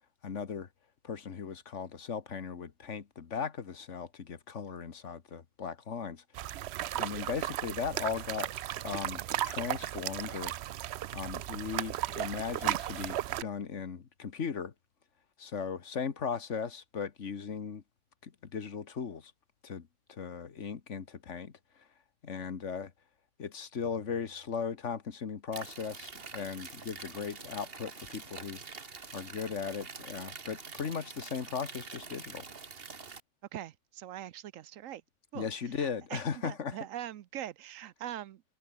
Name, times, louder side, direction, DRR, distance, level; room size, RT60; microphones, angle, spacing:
voice 1, 0.2-0.7 1.0-6.2 7.0-8.5 8.8-14.7 15.4-17.8 18.2-19.3 19.6-21.9 22.2-22.9 23.4-28.6 29.1-32.5 35.3-36.8, left 6 dB, 65° left, 1.7 m, -38 dB
sound 1, 6.3-13.4, right 13 dB, 65° right, 0.8 m, -35 dB
sound 2, 25.5-33.2, right 5 dB, 50° right, 1.8 m, -46 dB
voice 2, 33.5-35.0 35.3-35.5 35.8-38.4, right 12 dB, 85° right, 1.1 m, -42 dB
omnidirectional pair, 1.3 m